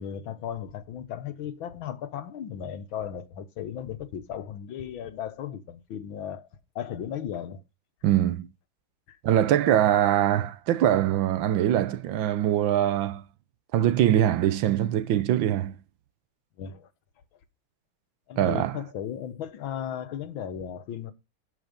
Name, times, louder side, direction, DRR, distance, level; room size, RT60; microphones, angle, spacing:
voice 1, 0.0-6.5 6.8-7.6 9.1-9.2 16.6-16.9 18.3-21.1, left 9 dB, 85° left, 1.9 m, -36 dB
voice 2, 8.0-8.5 9.2-13.2 13.7-15.8 18.4-18.8, right 11 dB, 80° right, 1.6 m, -23 dB
11.5 x 5.7 x 5.1 m
omnidirectional pair, 2.1 m